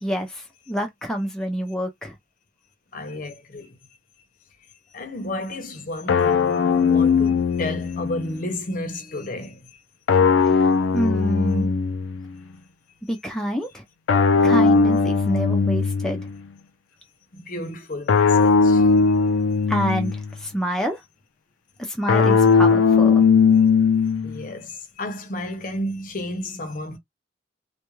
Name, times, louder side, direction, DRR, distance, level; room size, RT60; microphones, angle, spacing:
voice 1, 0.0-2.1 10.4-11.7 13.1-13.8 14.4-16.3 19.7-21.0 21.8-23.3, equal, 5° left, 0.4 m, -27 dB
voice 2, 2.9-3.8 4.2-4.3 4.9-9.8 17.3-19.1 19.6-19.7 24.0-27.0, left 1 dB, 45° left, 0.6 m, -32 dB
sound 1, 6.1-8.4 10.1-12.3 14.1-16.4 18.1-20.3 22.1-24.4, left 5 dB, 90° left, 0.4 m, -18 dB
2.3 x 2.2 x 3.0 m
head